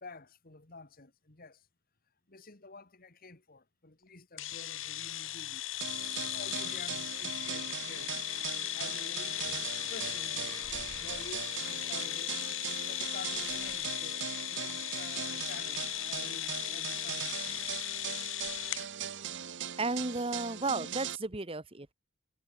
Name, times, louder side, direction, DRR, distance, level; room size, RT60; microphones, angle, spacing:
voice 1, 0.0-1.7 2.3-5.6 6.0-8.1 8.7-9.4 9.8-10.7 10.9-12.4 12.9-17.5 20.7-20.9, left 3 dB, 40° left, 1.8 m, -50 dB
sound 1, 4.4-18.9, left 14 dB, 60° left, 1.5 m, -37 dB
sound 2, 5.8-21.2, right 9 dB, 55° right, 0.9 m, -40 dB
Burping eructation, 9.4-14.2, equal, 5° right, 3.7 m, -57 dB
voice 2, 19.8-21.9, right 3 dB, 25° right, 1.3 m, -33 dB
head